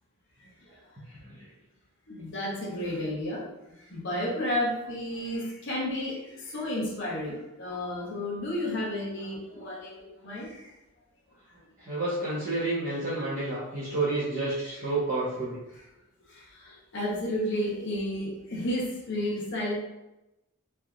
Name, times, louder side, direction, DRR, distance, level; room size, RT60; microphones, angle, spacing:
voice 1, 1.1-1.5 11.8-15.6, right 2 dB, 40° right, -12 dB, 0.9 m, -30 dB
voice 2, 2.1-3.4 3.9-10.7 16.3-19.7, left 1 dB, 50° left, -5 dB, 0.7 m, -32 dB
3.3 x 2.6 x 2.3 m, 0.95 s
head